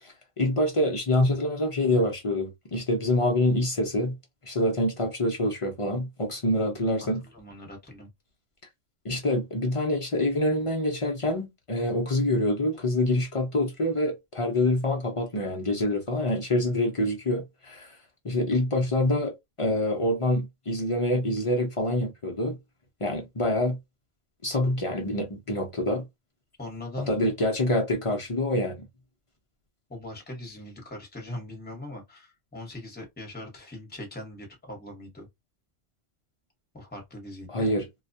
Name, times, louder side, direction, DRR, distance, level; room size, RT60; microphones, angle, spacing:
voice 1, 0.0-4.1 4.5-7.2 9.0-17.9 18.2-22.6 23.0-23.8 24.4-26.1 27.1-28.8 37.5-37.9, left 1 dB, 50° left, 0.4 m, -26 dB
voice 2, 6.8-8.1 26.6-27.1 29.9-35.3 36.7-37.7, left 1 dB, 10° left, 0.8 m, -40 dB
2.3 x 2.2 x 2.6 m
omnidirectional pair, 1.3 m